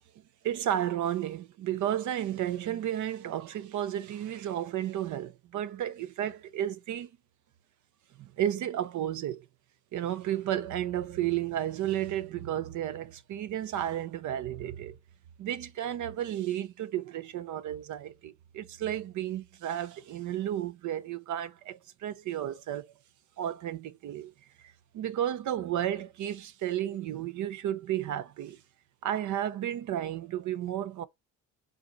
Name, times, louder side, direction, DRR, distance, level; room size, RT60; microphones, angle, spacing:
voice 1, 0.4-7.1 8.2-9.4 9.9-15.0 15.4-22.9 23.4-24.3 24.6-28.6 29.0-31.1, right 11 dB, 65° right, 0.8 m, -33 dB
6.4 x 4.0 x 4.1 m
cardioid pair, 100°, 32 cm